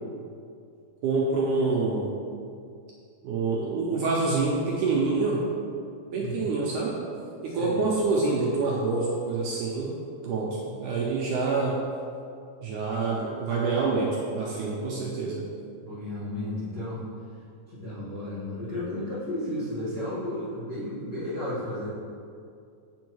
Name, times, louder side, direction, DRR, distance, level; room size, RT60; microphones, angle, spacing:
voice 1, 1.0-2.1 3.2-5.4 6.1-7.0 7.4-9.9 10.2-11.8 12.6-15.4, right 3 dB, 75° right, -4 dB, 2.0 m, -26 dB
voice 2, 6.1-6.5 7.5-7.9 10.4-10.5 15.8-17.0 17.7-21.9, left 1 dB, 45° left, -13 dB, 1.4 m, -33 dB
8.7 x 5.3 x 3.1 m, 2.4 s
omnidirectional pair, 4.2 m